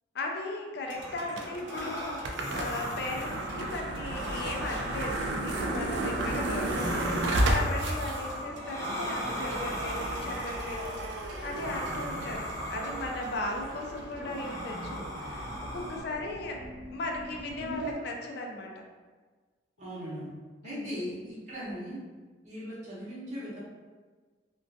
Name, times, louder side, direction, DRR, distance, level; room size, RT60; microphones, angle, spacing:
voice 1, 0.1-12.4 12.7-16.6 16.9-18.7 20.6-20.9, left 2 dB, 60° left, 1 dB, 0.3 m, -37 dB
sound 1, 0.9-16.0, equal, 15° left, 0.6 m, -39 dB
sound 2, 0.9-17.9, right 1 dB, 75° right, 0.3 m, -34 dB
sound 3, 4.0-9.7, left 1 dB, 90° left, 0.7 m, -50 dB
voice 2, 19.8-20.3 20.6-22.0 22.4-23.6, equal, 40° right, -7 dB, 0.8 m, -38 dB
2.4 x 2.2 x 2.5 m, 1.4 s
head